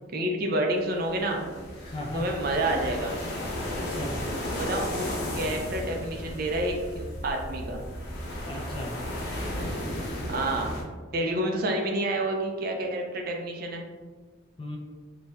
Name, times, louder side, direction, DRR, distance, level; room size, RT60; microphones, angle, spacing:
voice 1, 0.1-1.4 2.1-3.2 4.6-5.1 5.3-7.8 10.3-10.7 11.1-13.8, right 1 dB, 50° right, 2 dB, 0.4 m, -28 dB
sound 1, 0.8-10.8, left 1 dB, 55° left, 0.7 m, -34 dB
voice 2, 1.8-2.3 3.7-4.2 8.4-9.0 14.6-14.8, left 1 dB, 25° left, 0 dB, 0.4 m, -36 dB
4.0 x 2.1 x 2.2 m, 1.4 s
head